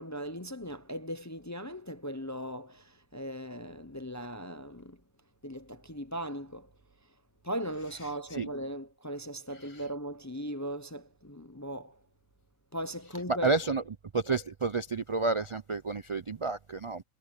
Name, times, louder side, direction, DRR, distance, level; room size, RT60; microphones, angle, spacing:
voice 1, 0.0-5.0 5.4-6.7 7.4-12.0 12.7-13.6, equal, 20° left, 0.5 m, -38 dB
voice 2, 13.3-13.8 14.1-17.0, right 3 dB, 45° right, 0.4 m, -30 dB
omnidirectional pair, 1.4 m